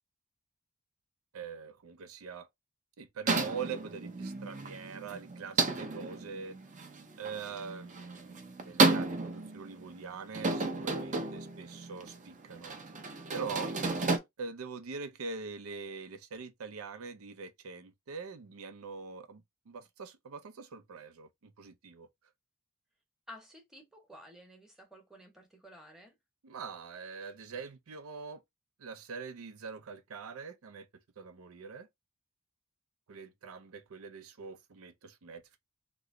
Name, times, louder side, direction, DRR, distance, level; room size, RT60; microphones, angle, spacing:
voice 1, 1.3-2.5 3.0-6.6 7.2-12.8 13.3-13.7 14.4-22.1 26.4-28.4 28.8-30.9 31.2-31.9 33.1-35.6, right 5 dB, 90° right, 0.5 m, -43 dB
sound 1, 3.3-14.2, right 3 dB, 35° right, 0.6 m, -32 dB
voice 2, 23.3-26.1, left 1 dB, ahead, 1.0 m, -53 dB
3.0 x 2.0 x 3.5 m
head